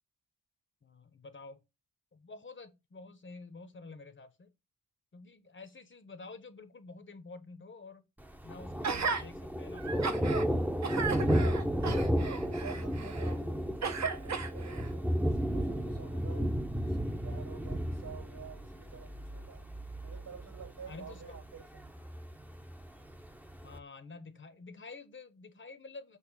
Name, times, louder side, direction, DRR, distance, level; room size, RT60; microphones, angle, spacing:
voice 1, 0.8-1.6 2.1-4.5 5.1-8.1 8.4-10.6 20.9-21.4 23.6-26.2, left 3 dB, 35° left, 1.0 m, -49 dB
Thunder, 8.2-23.8, equal, 5° right, 0.8 m, -33 dB
Gasp, 8.8-9.2 9.8-10.5 10.8-13.3 13.8-14.9 15.5-15.6, right 5 dB, 50° right, 1.2 m, -35 dB
voice 2, 11.6-12.1 12.4-16.5 16.8-19.7 20.0-21.9, right 6 dB, 75° right, 5.8 m, -50 dB
8.2 x 3.2 x 6.2 m
wide cardioid pair, 145°, 34 cm